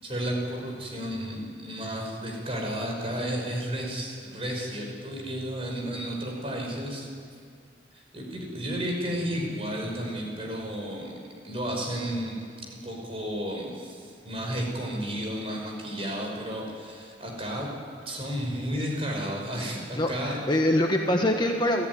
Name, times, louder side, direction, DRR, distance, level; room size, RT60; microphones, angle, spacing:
voice 1, 0.0-7.1 7.9-11.2 11.4-17.7 18.1-20.4, equal, 30° right, 0 dB, 5.6 m, -32 dB
voice 2, 19.9-21.9, left 1 dB, 25° left, 2 dB, 1.4 m, -24 dB
29.5 x 14.5 x 9.8 m, 2.2 s
head